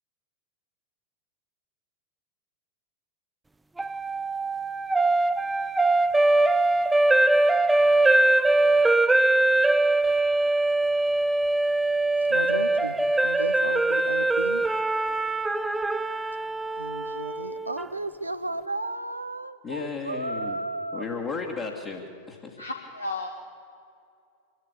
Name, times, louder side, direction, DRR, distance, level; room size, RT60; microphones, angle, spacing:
sound 1, 3.8-17.9, right 2 dB, 10° right, 0.6 m, -22 dB
voice 1, 12.3-14.6 16.8-21.1, right 2 dB, 85° right, 9 dB, 0.8 m, -34 dB
voice 2, 19.6-20.6 20.9-22.6, left 4 dB, 30° left, -3 dB, 2.3 m, -34 dB
voice 3, 22.6-23.3, left 2 dB, 80° left, 3 dB, 1.4 m, -33 dB
24.5 x 13.0 x 9.9 m, 2.4 s
figure-of-eight pair, 90°, 0 cm